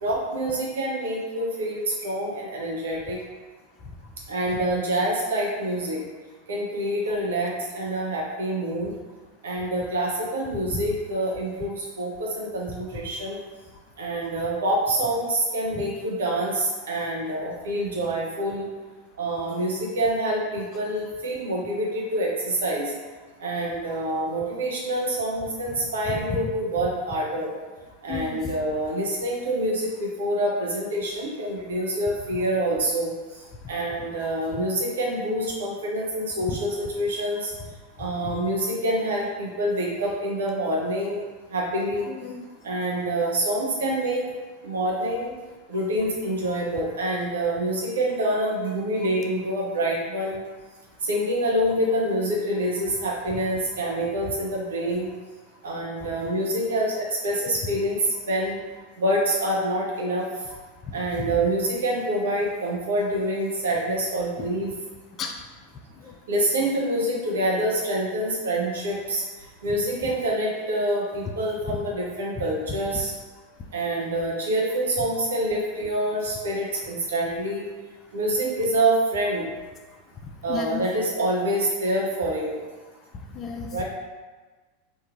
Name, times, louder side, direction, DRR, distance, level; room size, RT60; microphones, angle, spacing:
voice 1, 0.0-3.2 4.3-6.0 6.5-8.9 9.4-13.4 14.0-18.7 19.2-22.9 23.4-27.5 28.0-33.1 33.7-37.5 38.0-41.2 41.5-42.0 42.6-44.2 44.6-45.3 45.7-50.4 51.1-55.1 55.6-58.0 58.3-58.6 59.0-60.2 60.9-64.7 66.3-69.2 69.6-73.1 73.7-77.6 78.1-79.5 80.4-82.6 83.7-83.8, right 1 dB, 75° right, -4 dB, 0.7 m, -26 dB
voice 2, 26.1-26.4 28.1-28.5 34.0-34.1 36.5-36.6 38.2-38.4 42.1-42.5 61.1-61.4 64.4-64.5 65.2-65.3 66.0-66.1 70.0-70.1 71.7-71.8 72.4-72.5 80.5-80.8 83.3-83.7, left 5 dB, 35° left, 3 dB, 0.4 m, -33 dB
2.8 x 2.5 x 2.5 m, 1.3 s
figure-of-eight pair, 90°, 0 cm